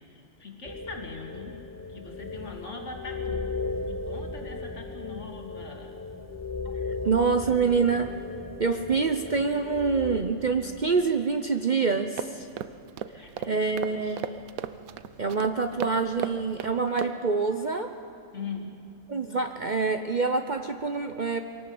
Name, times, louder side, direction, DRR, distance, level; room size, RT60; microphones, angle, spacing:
voice 1, 0.0-1.6 1.9-5.9 13.1-14.2 18.3-18.8, left 4 dB, 60° left, 2 dB, 2.6 m, -42 dB
sound 1, 0.6-10.2, left 3 dB, 15° left, 1.0 m, -36 dB
voice 2, 7.0-8.1 8.6-12.5 13.1-14.3 15.2-17.9 19.1-21.4, right 4 dB, 40° right, 6 dB, 0.7 m, -26 dB
sound 2, 12.2-17.1, right 9 dB, 90° right, 1.2 m, -37 dB
22.5 x 18.0 x 7.9 m, 2.7 s
omnidirectional pair, 1.4 m